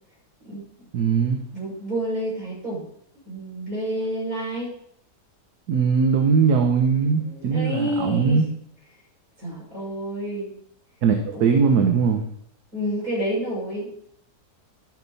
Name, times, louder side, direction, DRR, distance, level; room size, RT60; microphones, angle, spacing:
voice 1, 0.9-1.4 5.7-8.5 11.0-12.2, right 5 dB, 70° right, 4 dB, 1.5 m, -20 dB
voice 2, 1.5-2.8 3.3-4.7 7.2-8.4 9.4-10.5 11.3-11.7 12.7-13.9, right 1 dB, 55° right, -6 dB, 6.5 m, -29 dB
12.0 x 8.9 x 4.1 m, 0.67 s
omnidirectional pair, 1.8 m